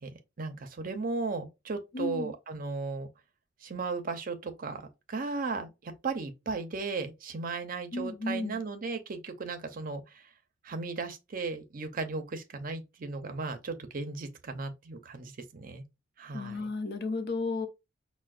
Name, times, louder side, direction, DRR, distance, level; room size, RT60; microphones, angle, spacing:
voice 1, 0.0-3.1 3.6-10.2 10.6-15.8 16.2-16.7, right 4 dB, 50° right, 0.6 m, -36 dB
voice 2, 1.9-2.3 7.9-8.6 16.3-17.7, left 3 dB, 60° left, 0.7 m, -33 dB
5.4 x 2.1 x 2.4 m
head